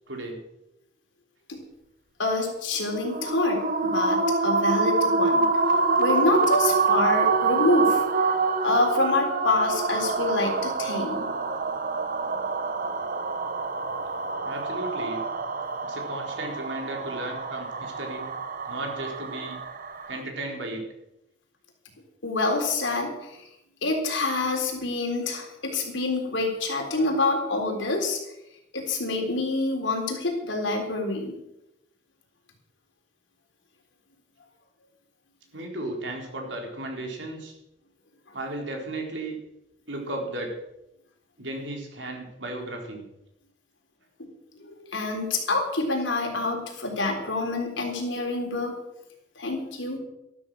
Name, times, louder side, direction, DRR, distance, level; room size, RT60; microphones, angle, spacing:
voice 1, 0.1-0.4 14.4-15.2 15.8-18.3 18.7-19.6 20.1-20.8 35.5-37.5 38.3-39.4 39.9-40.5 41.4-43.1, right 1 dB, 75° right, 1 dB, 4.0 m, -34 dB
voice 2, 2.2-5.5 6.0-8.0 8.6-11.3 22.2-23.4 23.8-28.2 28.7-31.4 44.2-44.3 44.6-48.7 49.4-50.0, left 2 dB, 85° left, 2 dB, 3.9 m, -27 dB
sound 1, 2.9-20.2, right 4 dB, 50° right, 1.2 m, -26 dB
13.0 x 12.5 x 6.2 m, 0.87 s
head